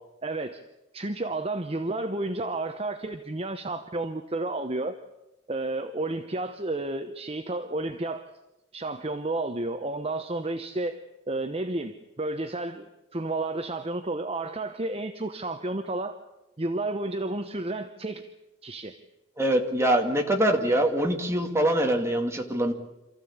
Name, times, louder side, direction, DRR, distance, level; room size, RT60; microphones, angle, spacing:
voice 1, 0.2-0.6 0.9-5.0 5.5-8.3 8.7-11.0 11.3-16.2 16.6-18.3 18.6-19.0, right 2 dB, 30° right, 7 dB, 1.0 m, -31 dB
voice 2, 19.4-22.7, right 1 dB, 15° right, 3 dB, 2.3 m, -24 dB
27.5 x 14.5 x 8.7 m, 0.97 s
head